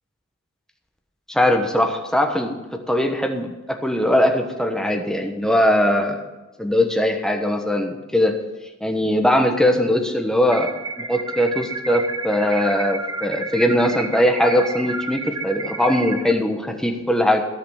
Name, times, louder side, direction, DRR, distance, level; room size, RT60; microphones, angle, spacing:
voice 1, 1.3-6.2 6.6-8.4 8.8-17.5, left 1 dB, 5° left, 3 dB, 1.1 m, -20 dB
sound 1, 10.5-16.3, right 3 dB, 20° right, 0.8 m, -31 dB
13.5 x 5.9 x 7.1 m, 1.1 s
head